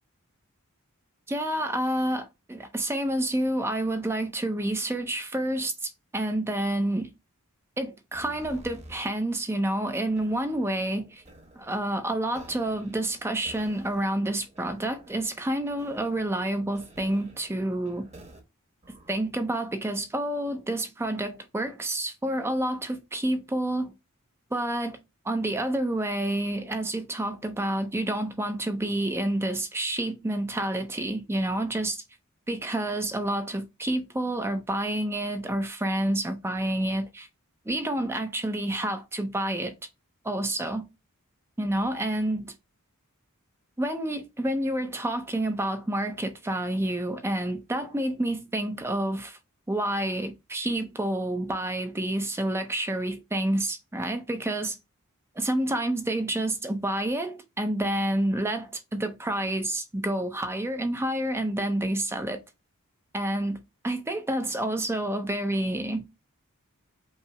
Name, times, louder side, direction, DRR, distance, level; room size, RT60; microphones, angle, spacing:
voice 1, 1.3-7.1 7.8-11.2 11.6-18.1 19.1-23.9 24.5-25.0 25.2-32.0 32.5-37.3 37.7-39.7 40.2-40.8 41.6-42.5 43.8-49.4 49.7-54.8 55.4-62.4 63.1-66.0, right 1 dB, 10° right, 0.5 m, -29 dB
sound 1, 8.1-9.0 9.8-18.4 18.8-19.8, right 1 dB, 30° right, 1.1 m, -52 dB
5.4 x 2.0 x 4.6 m
head